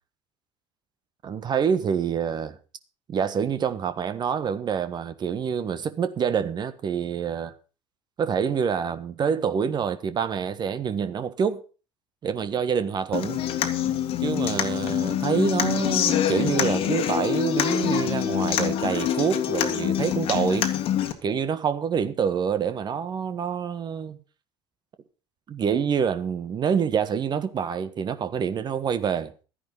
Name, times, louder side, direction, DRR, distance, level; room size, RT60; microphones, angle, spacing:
voice 1, 1.2-2.6 3.1-7.5 8.2-11.6 12.2-13.4 14.2-20.7 21.2-24.2 25.5-29.3, right 7 dB, 35° right, 1.4 m, -26 dB
Human voice / Acoustic guitar, 13.1-21.1, left 10 dB, 45° left, 1.8 m, -25 dB
13.0 x 10.0 x 5.5 m
figure-of-eight pair, 60°, 13 cm